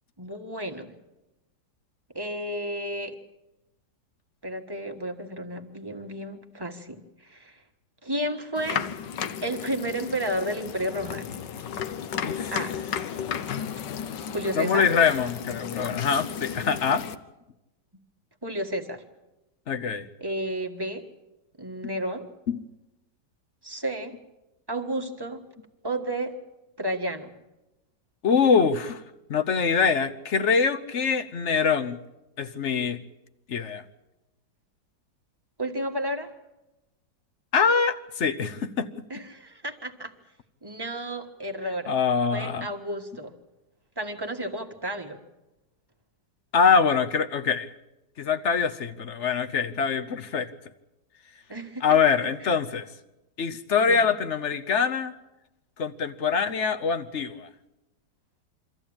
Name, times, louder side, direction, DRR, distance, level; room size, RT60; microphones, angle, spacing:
voice 1, 0.2-0.9 2.1-3.2 4.4-7.6 8.0-8.8 9.4-11.3 12.5-12.8 14.3-14.9 18.4-19.0 20.2-21.0 21.6-22.3 23.6-24.2 24.7-25.4 25.8-26.4 26.8-27.3 35.6-36.3 39.1-40.1 40.6-41.9 42.3-43.3 44.0-45.2 51.5-51.8 52.4-52.5 53.9-54.0, right 1 dB, 15° right, 3 dB, 1.4 m, -32 dB
sound 1, 8.6-17.2, left 8 dB, 75° left, 1.5 m, -34 dB
voice 2, 14.5-17.0 19.7-20.1 22.5-22.6 28.2-29.0 29.3-32.0 32.4-33.0 33.5-33.8 37.5-38.9 41.9-42.7 46.5-47.7 48.2-50.5 51.8-52.9 53.4-55.1 55.8-57.5, left 6 dB, 50° left, 11 dB, 1.0 m, -24 dB
24.5 x 14.5 x 8.8 m, 0.99 s
omnidirectional pair, 1.9 m